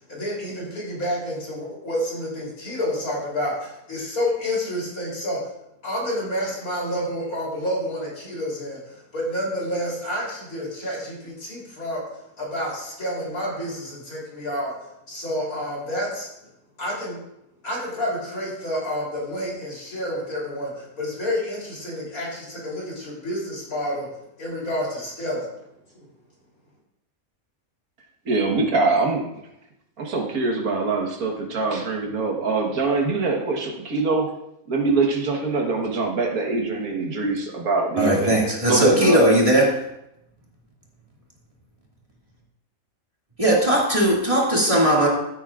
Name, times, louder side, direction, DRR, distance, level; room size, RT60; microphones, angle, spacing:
voice 1, 0.1-5.4 5.8-12.0 12.4-14.7 15.1-16.3 16.8-17.2 17.6-24.1 24.4-25.5, equal, 85° left, -4 dB, 3.8 m, -29 dB
voice 2, 28.3-29.2 30.0-34.3 34.7-38.4 38.7-39.2, right 3 dB, 85° right, 1 dB, 1.8 m, -23 dB
voice 3, 38.0-39.7 43.4-45.1, right 1 dB, 25° right, -4 dB, 2.2 m, -18 dB
14.5 x 8.2 x 2.4 m, 0.83 s
omnidirectional pair, 1.5 m